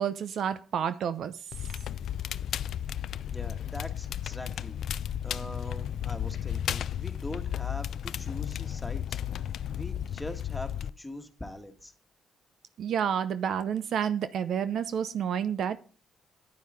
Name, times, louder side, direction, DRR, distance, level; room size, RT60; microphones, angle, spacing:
voice 1, 0.0-1.4 12.8-15.8, right 8 dB, 70° right, 0.7 m, -29 dB
Crackle, 1.5-10.9, left 10 dB, 70° left, 0.4 m, -34 dB
voice 2, 3.3-9.2 9.7-11.9, left 1 dB, 10° left, 1.8 m, -42 dB
9.9 x 9.6 x 3.6 m
cardioid pair, 90°, 0 cm